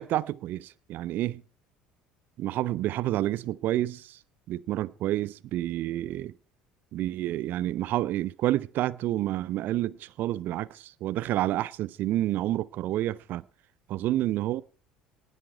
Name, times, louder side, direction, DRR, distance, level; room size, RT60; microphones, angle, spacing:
voice 1, 0.0-1.4 2.4-4.2 4.5-6.3 6.9-13.4 13.9-14.6, right 14 dB, 50° right, 0.6 m, -29 dB
18.0 x 11.0 x 4.6 m
figure-of-eight pair, 60°, 4 cm